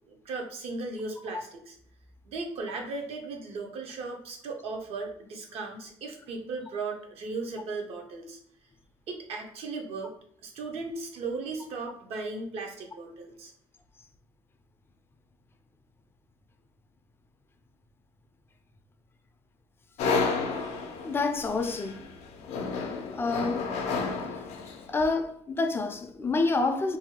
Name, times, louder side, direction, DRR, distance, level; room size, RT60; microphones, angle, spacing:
voice 1, 0.1-1.8 2.2-8.4 9.1-10.1 10.4-13.5, right 3 dB, 65° right, 0.6 m, -36 dB
sound 1, 20.0-24.9, left 4 dB, 90° left, 0.4 m, -31 dB
voice 2, 21.0-22.0 23.1-23.7 24.9-27.0, left 3 dB, 20° left, 0.3 m, -28 dB
2.6 x 2.2 x 2.8 m
cardioid pair, 120°, 11 cm